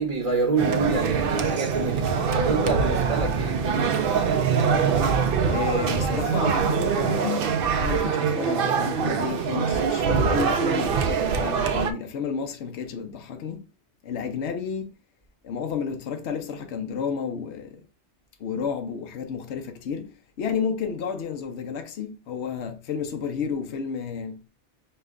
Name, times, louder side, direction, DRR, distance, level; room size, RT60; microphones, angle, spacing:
voice 1, 0.0-4.3, right 3 dB, 40° right, 0.8 m, -27 dB
sound 1, 0.6-11.9, right 6 dB, 60° right, 0.7 m, -24 dB
voice 2, 5.5-7.5 7.8-13.6 14.0-14.9 15.4-17.8 18.4-24.4, left 6 dB, 70° left, 1.0 m, -31 dB
5.4 x 2.2 x 3.6 m
omnidirectional pair, 1.2 m